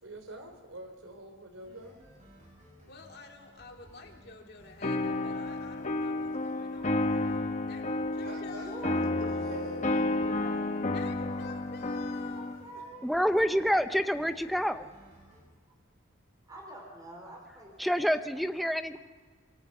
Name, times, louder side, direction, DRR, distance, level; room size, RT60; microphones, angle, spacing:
voice 1, 0.0-2.0 8.3-10.0, right 1 dB, 85° right, 5 dB, 3.6 m, -46 dB
sound 1, 1.6-15.4, equal, 35° right, 7.0 m, -57 dB
voice 2, 2.9-7.8 8.1-8.9 10.9-12.8, left 4 dB, 50° left, 2 dB, 2.5 m, -50 dB
sound 2, 4.8-12.6, left 2 dB, 35° left, 1.0 m, -31 dB
voice 3, 8.6-9.4 10.2-10.9 11.2-11.5 12.3-14.4 16.5-18.5, right 1 dB, 20° right, 0 dB, 4.5 m, -48 dB
voice 4, 13.0-14.9 17.8-19.0, equal, ahead, 9 dB, 0.6 m, -27 dB
25.5 x 22.5 x 5.5 m, 1.5 s
head